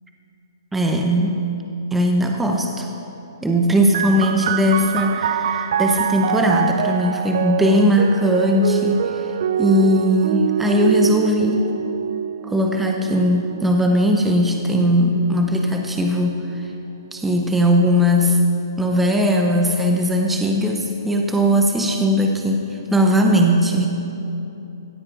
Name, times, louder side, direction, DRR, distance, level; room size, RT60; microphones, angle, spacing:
voice 1, 0.7-1.4 1.9-2.9 3.4-9.3 9.6-11.6 12.4-16.7 17.1-18.4 18.8-23.9, equal, 5° right, 2 dB, 0.8 m, -19 dB
sound 1, 3.9-17.2 18.0-18.8, right 9 dB, 55° right, 0.4 m, -25 dB
17.5 x 13.5 x 2.6 m, 2.9 s
figure-of-eight pair, 130°, 2 cm